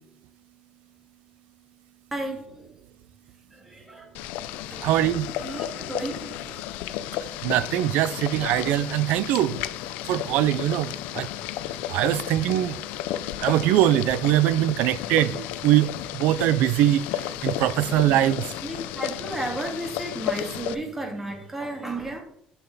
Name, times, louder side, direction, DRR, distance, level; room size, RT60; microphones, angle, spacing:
voice 1, 2.1-2.7 3.5-4.1 4.7-4.9 5.4-6.7 11.6-11.8 14.8-14.9 17.7-18.2 18.6-22.2, right 1 dB, 10° right, 2.2 m, -34 dB
Boiling, 4.1-20.7, left 12 dB, 90° left, 0.5 m, -33 dB
voice 2, 4.8-5.3 7.4-9.6 10.1-11.3 11.9-12.8 13.4-17.0 17.4-18.5, right 13 dB, 80° right, 0.4 m, -22 dB
6.9 x 6.7 x 4.0 m
cardioid pair, 120°, 3 cm